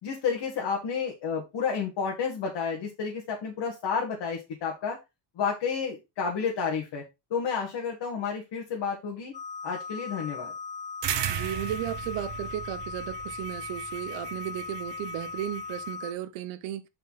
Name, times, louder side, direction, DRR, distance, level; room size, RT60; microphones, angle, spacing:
voice 1, 0.0-5.0 5.4-7.0 7.3-9.3 9.6-10.5, left 6 dB, 60° left, 2.0 m, -31 dB
sound 1, 9.3-16.1, left 4 dB, 20° left, 0.3 m, -38 dB
sound 2, 11.0-15.9, right 10 dB, 60° right, 1.1 m, -36 dB
voice 2, 11.3-16.9, right 11 dB, 90° right, 1.0 m, -35 dB
6.3 x 5.5 x 4.1 m
cardioid pair, 130°, 48 cm